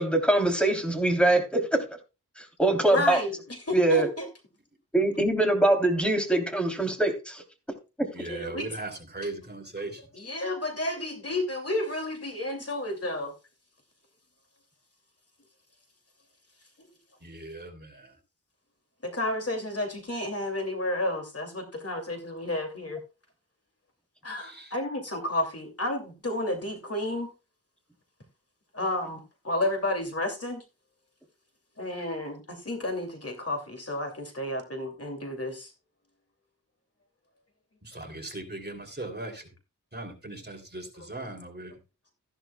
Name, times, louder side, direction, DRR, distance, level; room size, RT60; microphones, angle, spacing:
voice 1, 0.0-1.8 2.4-3.2 3.7-4.1 4.9-7.4 8.0-8.1, right 2 dB, 5° left, 3.2 m, -23 dB
voice 2, 2.8-3.4 3.7-4.3 8.2-8.7 9.2-9.3 9.8-9.9 10.1-13.3 19.0-23.0 24.2-27.3 28.7-30.6 31.8-35.7 41.2-41.3, left 1 dB, 45° left, 2.6 m, -31 dB
voice 3, 8.1-10.0 17.2-18.1 24.4-24.7 37.8-39.4 39.9-41.7, right 2 dB, 30° right, 3.1 m, -38 dB
14.0 x 11.5 x 2.3 m
wide cardioid pair, 75°, 34 cm